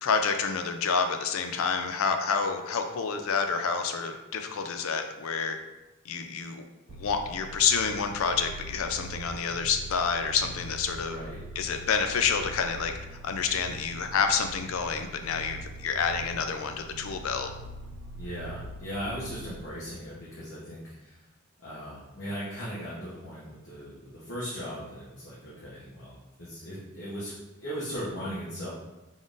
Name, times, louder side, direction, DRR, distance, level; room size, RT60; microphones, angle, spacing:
voice 1, 0.0-5.6 6.1-11.2 11.6-12.9 13.2-17.5, left 6 dB, 85° left, 6 dB, 0.4 m, -28 dB
sound 1, 6.9-19.6, right 2 dB, 60° right, 0.3 m, -43 dB
voice 2, 11.0-11.4 18.2-21.2 21.6-27.3 27.6-28.7, equal, 60° left, -9 dB, 1.0 m, -38 dB
3.8 x 3.7 x 2.5 m, 1.0 s
head